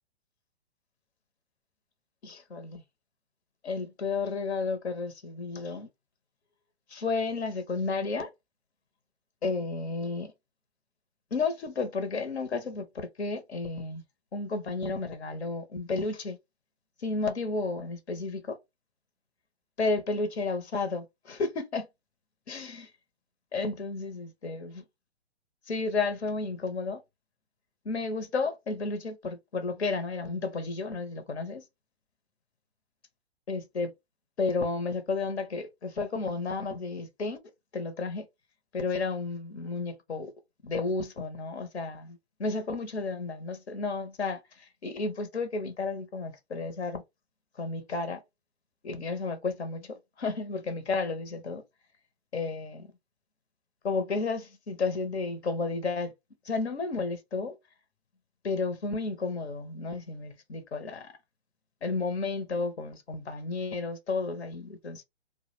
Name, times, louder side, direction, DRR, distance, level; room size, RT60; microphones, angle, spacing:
voice 1, 2.2-2.8 3.6-5.9 6.9-8.3 9.4-10.3 11.3-14.0 14.3-16.4 17.0-18.6 19.8-21.9 22.5-22.9 23.5-24.8 25.7-27.0 27.8-31.6 33.5-33.9 34.4-37.4 37.7-38.3 38.7-40.3 40.6-47.0 47.6-48.2 48.8-51.6 52.3-52.9 53.8-56.1 56.4-57.6 58.4-61.1 61.8-65.0, left 3 dB, 85° left, 0.7 m, -32 dB
2.3 x 2.1 x 2.9 m
hypercardioid pair, 125°, 32 cm